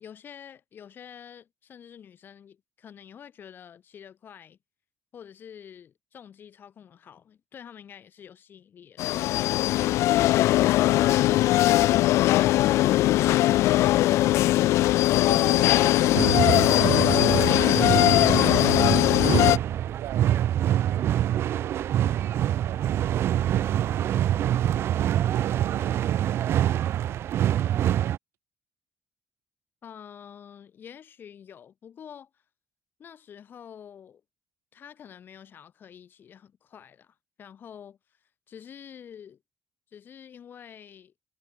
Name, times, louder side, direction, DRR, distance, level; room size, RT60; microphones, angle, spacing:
voice 1, 0.0-4.6 5.1-9.7 29.8-32.3 33.0-34.2 34.7-38.0 38.5-39.4 39.9-41.1, left 8 dB, 45° left, 4.7 m, -47 dB
sound 1, 9.0-19.6, left 16 dB, 90° left, 0.5 m, -20 dB
voice 2, 15.3-19.5 20.0-24.6 25.2-26.9, right 15 dB, 85° right, 7.0 m, -44 dB
sound 2, 16.1-28.2, right 11 dB, 60° right, 1.0 m, -25 dB
cardioid pair, 145°, 5 cm